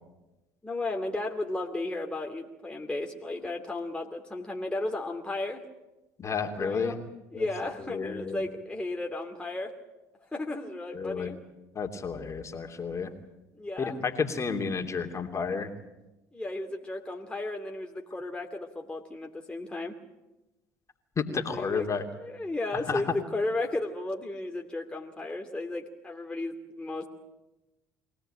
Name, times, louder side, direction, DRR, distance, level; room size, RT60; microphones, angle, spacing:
voice 1, 0.6-5.6 6.5-7.0 7.3-9.7 10.3-11.4 13.6-14.0 16.3-19.9 21.3-27.1, left 2 dB, 10° left, 1 dB, 2.6 m, -34 dB
voice 2, 6.2-7.0 7.3-7.5 7.9-8.4 10.9-11.3 11.7-13.1 13.8-15.7 21.2-22.0 22.7-23.0, left 5 dB, 35° left, 4 dB, 2.9 m, -31 dB
24.0 x 17.0 x 9.0 m, 1.0 s
hypercardioid pair, 70°, 9 cm